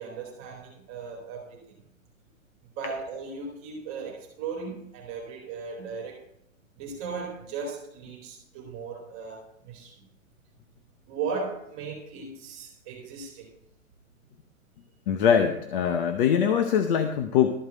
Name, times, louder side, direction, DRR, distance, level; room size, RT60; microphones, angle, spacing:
voice 1, 0.0-1.8 2.8-6.2 6.8-10.0 11.1-13.5, right 5 dB, 30° right, -1 dB, 2.5 m, -37 dB
voice 2, 15.1-17.5, left 8 dB, 40° left, 7 dB, 0.8 m, -22 dB
13.0 x 4.8 x 7.5 m, 0.79 s
hypercardioid pair, 135°, 42 cm